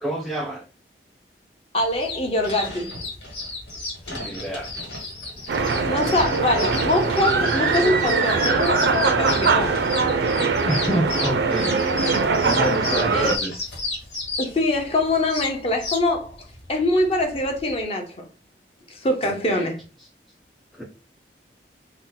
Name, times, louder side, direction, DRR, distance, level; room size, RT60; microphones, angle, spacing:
voice 1, 0.0-0.6 4.1-4.7 10.7-13.6 19.2-19.7 20.7-20.8, right 1 dB, ahead, 0.3 m, -28 dB
voice 2, 1.7-2.9 5.9-9.7 13.1-13.4 14.4-18.3 18.9-19.8, left 1 dB, 35° left, 0.6 m, -23 dB
sound 1, 1.8-17.8, left 2 dB, 85° left, 1.4 m, -33 dB
sound 2, 5.5-13.4, right 4 dB, 75° right, 0.4 m, -22 dB
2.7 x 2.1 x 3.8 m
head